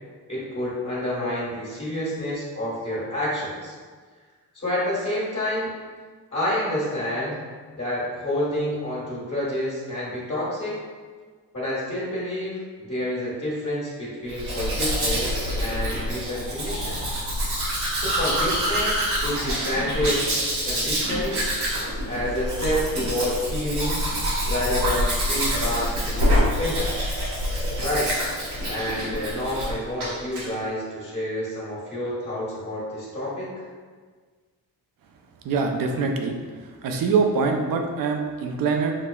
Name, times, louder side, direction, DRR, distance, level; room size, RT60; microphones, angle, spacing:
voice 1, 0.3-3.7 4.5-5.7 6.3-7.4 7.7-10.8 11.5-17.0 17.9-20.2 20.5-21.4 22.0-24.0 24.5-26.9 27.8-28.1 28.7-33.6, left 1 dB, 40° left, -10 dB, 1.5 m, -28 dB
Domestic sounds home sounds, 14.3-29.7 30.0-30.5, equal, 80° right, 1.3 m, -26 dB
voice 2, 35.4-36.4 36.8-39.0, right 4 dB, 60° right, 3 dB, 0.5 m, -23 dB
5.8 x 2.1 x 2.3 m, 1.5 s
cardioid pair, 105°, 38 cm